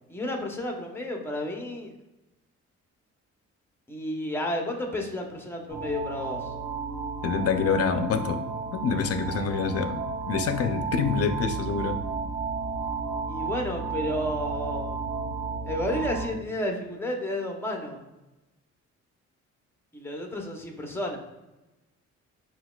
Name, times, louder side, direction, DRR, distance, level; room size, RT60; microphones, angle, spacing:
voice 1, 0.1-1.9 3.9-6.5 13.3-15.0 15.6-18.0 19.9-21.2, left 1 dB, 10° left, 1 dB, 0.8 m, -31 dB
sound 1, 5.7-16.3, right 5 dB, 45° right, 1.2 m, -33 dB
voice 2, 7.2-8.4 8.7-12.0, left 5 dB, 55° left, 6 dB, 0.5 m, -26 dB
5.6 x 2.3 x 2.3 m, 1.0 s
cardioid pair, 90°, 30 cm